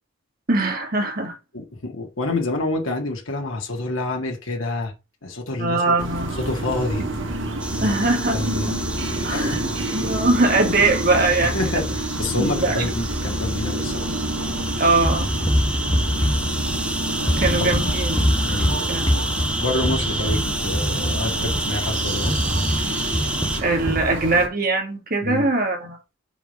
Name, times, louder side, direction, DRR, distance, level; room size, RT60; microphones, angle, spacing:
voice 1, 0.5-1.4 5.6-6.4 7.8-8.5 9.2-9.6 9.9-11.6 12.4-12.9 14.8-15.3 17.4-18.2 18.5-19.0 23.6-26.0, right 2 dB, 45° right, 2.1 m, -21 dB
voice 2, 1.5-4.9 5.2-5.9 6.4-7.1 7.7-8.1 8.3-8.8 9.3-9.6 11.4-14.1 17.6-17.7 18.4-18.8 19.6-22.4 25.2-25.5, left 2 dB, 80° left, 1.8 m, -27 dB
sound 1, 6.0-24.5, right 1 dB, 65° right, 1.7 m, -28 dB
sound 2, 7.6-23.6, right 1 dB, 5° right, 0.9 m, -30 dB
sound 3, 15.0-17.0 17.3-21.7 22.2-24.2, equal, 20° left, 1.3 m, -24 dB
5.1 x 5.0 x 5.3 m
head